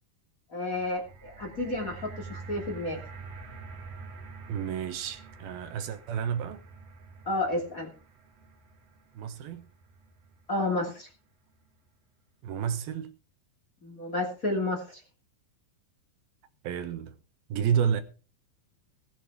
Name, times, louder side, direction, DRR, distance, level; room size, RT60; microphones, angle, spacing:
voice 1, 0.5-3.0 7.3-7.9 10.5-11.1 13.8-15.0, left 2 dB, 25° left, 2.4 m, -31 dB
sound 1, 0.7-10.9 11.7-11.8, right 4 dB, 45° right, 2.8 m, -47 dB
voice 2, 4.5-6.6 9.1-9.7 12.4-13.1 16.6-17.2 17.5-18.0, right 8 dB, 70° right, 2.8 m, -30 dB
18.0 x 8.6 x 4.8 m
omnidirectional pair, 4.7 m